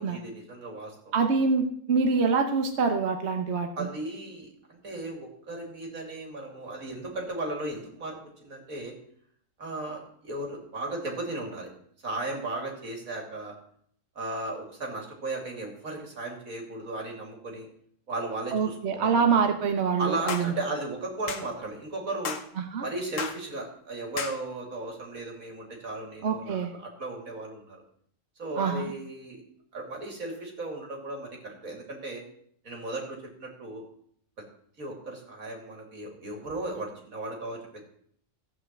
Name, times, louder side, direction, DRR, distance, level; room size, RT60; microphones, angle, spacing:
voice 1, 0.0-1.3 3.8-8.9 9.6-11.7 12.0-13.5 14.1-17.7 18.1-19.3 20.0-22.4 22.8-27.8 28.4-29.4 29.7-32.2 32.6-33.8 34.8-37.8, right 2 dB, 80° right, 1 dB, 3.2 m, -36 dB
voice 2, 1.1-3.9 18.5-20.5 22.7-22.8 26.2-26.7 28.6-28.9, right 5 dB, 55° right, 6 dB, 1.2 m, -25 dB
sound 1, 20.3-20.5 21.3-21.5 22.2-22.5 23.2-23.4 24.2-24.4, left 6 dB, 65° left, 1.4 m, -33 dB
15.0 x 5.7 x 7.5 m, 0.65 s
omnidirectional pair, 1.4 m